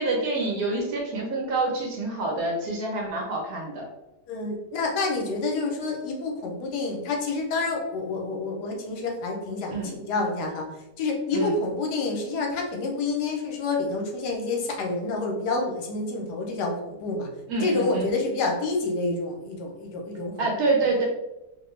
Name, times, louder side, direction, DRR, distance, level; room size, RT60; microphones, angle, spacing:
voice 1, 0.0-3.9 9.7-10.0 11.3-11.5 17.5-18.1 20.4-21.0, right 3 dB, 70° right, -1 dB, 1.1 m, -27 dB
voice 2, 4.3-9.8 10.1-10.7 11.0-17.3 17.6-20.3, left 3 dB, 80° left, 1 dB, 1.2 m, -28 dB
2.9 x 2.2 x 3.0 m, 0.95 s
omnidirectional pair, 1.7 m